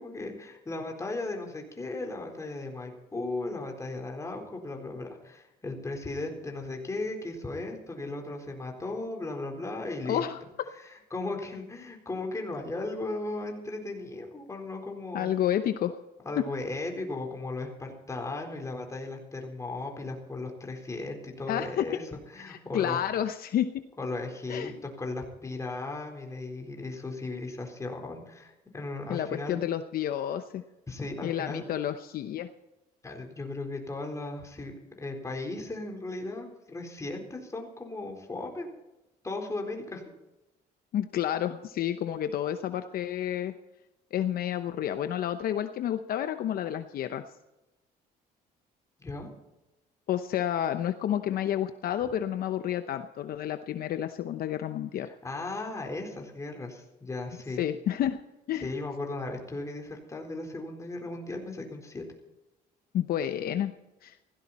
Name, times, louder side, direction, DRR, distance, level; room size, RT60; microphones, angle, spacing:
voice 1, 0.0-10.2 11.1-15.3 16.2-22.0 22.3-23.0 24.0-29.6 30.9-31.6 33.0-38.7 39.2-40.0 49.0-49.3 55.0-57.6 58.6-62.0, left 2 dB, 20° left, 2 dB, 4.2 m, -36 dB
voice 2, 10.0-10.4 15.1-16.0 21.5-21.9 22.5-23.7 24.5-24.7 29.1-30.6 31.2-32.5 40.9-43.5 44.1-47.2 50.1-55.1 57.6-58.2 58.5-58.7 62.9-63.7 64.0-64.2, left 10 dB, 60° left, 9 dB, 0.8 m, -30 dB
17.0 x 15.5 x 4.3 m, 0.97 s
cardioid pair, 110°, 17 cm